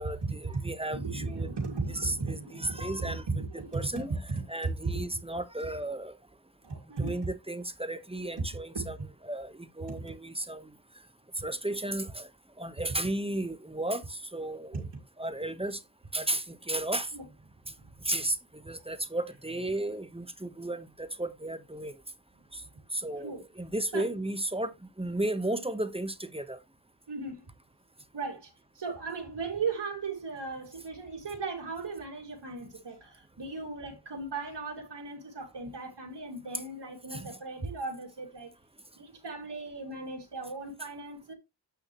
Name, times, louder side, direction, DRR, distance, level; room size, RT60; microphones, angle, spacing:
voice 1, 0.0-1.5 2.0-3.2 3.7-4.1 4.5-6.1 7.0-9.0 9.3-10.7 11.4-12.3 12.6-14.8 15.2-15.8 16.1-17.1 18.0-18.3 18.7-21.9 22.9-24.7 25.0-26.6 37.1-37.2, right 1 dB, 15° right, 1.2 m, -34 dB
voice 2, 0.9-3.8 4.3-4.7 6.6-7.2 8.4-8.5 8.7-9.1 9.9-10.0 14.7-14.9 17.1-17.3 17.8-17.9 22.6-22.7 23.2-23.4 23.9-24.0 27.1-27.5 28.1-38.5 39.0-41.3, right 3 dB, 75° right, 2.6 m, -37 dB
8.9 x 6.2 x 3.1 m
cardioid pair, 45°, 41 cm